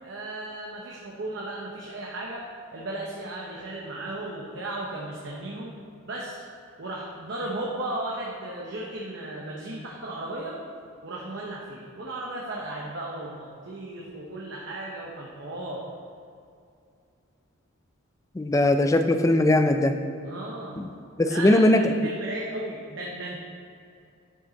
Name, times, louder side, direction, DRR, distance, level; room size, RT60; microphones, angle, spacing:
voice 1, 0.0-5.7 6.1-6.4 6.8-10.6 11.0-15.8 20.2-20.8 21.3-23.4, right 1 dB, 55° right, -3 dB, 0.9 m, -35 dB
voice 2, 18.4-19.9 20.8-20.9 21.2-21.9, left 1 dB, 15° left, 7 dB, 0.3 m, -20 dB
9.8 x 5.3 x 4.0 m, 2.4 s
head